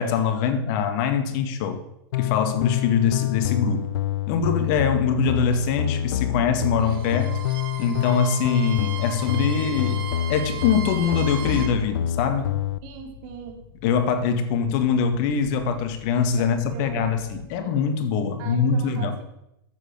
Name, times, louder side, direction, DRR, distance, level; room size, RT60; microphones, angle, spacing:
voice 1, 0.0-1.8 2.2-3.9 4.3-7.4 7.8-12.5 13.8-19.1, left 6 dB, 50° left, 1.9 m, -23 dB
sound 1, 2.1-12.8, left 11 dB, 65° left, 0.6 m, -27 dB
Bowed string instrument, 6.7-11.8, right 8 dB, 70° right, 2.4 m, -36 dB
sound 2, 10.4-17.4, left 3 dB, 20° left, 3.2 m, -48 dB
voice 2, 12.8-13.6 16.4-17.7 18.4-19.2, right 7 dB, 55° right, 3.3 m, -40 dB
12.0 x 7.8 x 8.0 m
hypercardioid pair, 110°, 13 cm